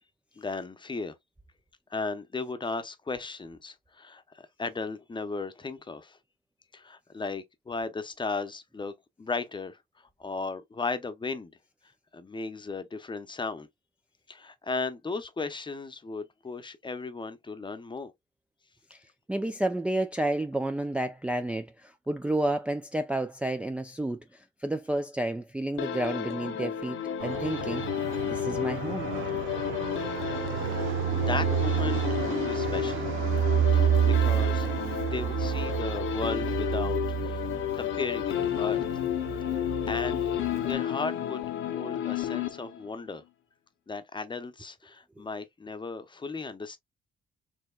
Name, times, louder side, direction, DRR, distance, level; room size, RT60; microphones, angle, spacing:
voice 1, 0.4-1.2 1.9-6.2 6.7-9.8 10.2-11.5 12.1-13.7 14.3-18.1 30.7-33.1 33.7-34.6 35.0-37.5 37.7-39.0 39.5-40.3 40.7-41.4 41.7-43.2 43.9-46.8, left 3 dB, 25° left, 0.8 m, -36 dB
voice 2, 19.3-27.8 28.2-29.1 45.2-45.3, right 1 dB, 5° right, 0.4 m, -31 dB
sound 1, 25.8-43.0, left 10 dB, 80° left, 0.8 m, -32 dB
Fixed-wing aircraft airplane, 27.2-40.7, right 9 dB, 90° right, 0.5 m, -30 dB
4.4 x 2.9 x 2.3 m
cardioid pair, 90°, 20 cm